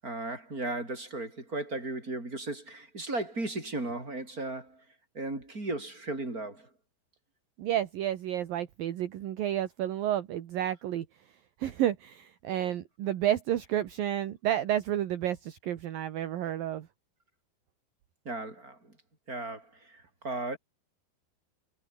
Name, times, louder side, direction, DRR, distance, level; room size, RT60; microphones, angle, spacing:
voice 1, 0.0-4.8 5.1-6.7 18.2-18.9 19.3-20.6, right 2 dB, 15° right, 7.6 m, -36 dB
voice 2, 7.6-11.1 11.6-16.9, right 11 dB, 60° right, 2.6 m, -31 dB
omnidirectional pair, 5.8 m